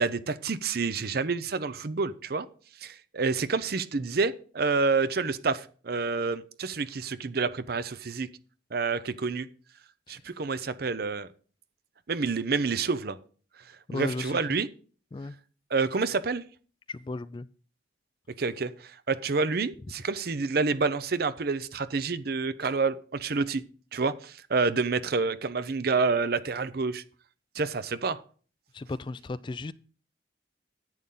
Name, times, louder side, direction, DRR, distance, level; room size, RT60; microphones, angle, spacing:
voice 1, 0.0-2.5 2.8-8.3 8.7-9.5 10.1-11.3 12.1-13.2 13.9-14.7 15.7-16.4 18.4-18.7 19.1-23.6 23.9-27.0 27.6-28.2, right 4 dB, 55° right, 0.6 m, -28 dB
voice 2, 13.9-14.4 15.1-15.3 16.9-17.5 28.7-29.7, left 3 dB, 25° left, 0.3 m, -35 dB
11.0 x 8.6 x 3.8 m
head